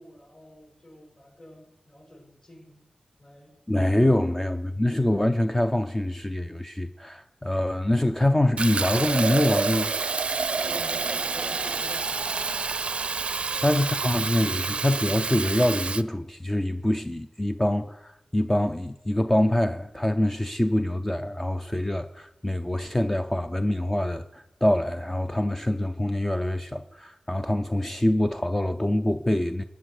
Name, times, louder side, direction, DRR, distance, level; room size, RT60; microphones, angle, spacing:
voice 1, 0.0-2.9 3.2-3.5 4.1-4.4 10.5-13.0 13.5-14.2, left 1 dB, 35° left, 7.3 m, -47 dB
voice 2, 3.7-9.9 13.6-29.6, left 1 dB, 15° left, 0.6 m, -25 dB
Fill (with liquid), 8.6-16.0, right 4 dB, 55° right, 0.5 m, -28 dB
20.5 x 8.2 x 6.5 m
wide cardioid pair, 105°, 2 cm